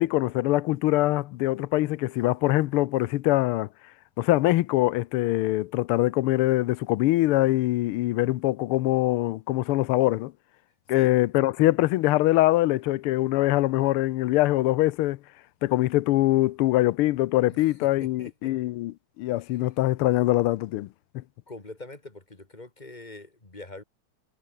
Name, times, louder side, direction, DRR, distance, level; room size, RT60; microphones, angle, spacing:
voice 1, 0.0-3.7 4.2-10.3 10.9-15.2 15.6-20.9 21.1-21.2, left 17 dB, 80° left, 1.6 m, -23 dB
voice 2, 18.0-18.5 21.5-23.8, left 2 dB, 20° left, 2.6 m, -43 dB
omnidirectional pair, 2.4 m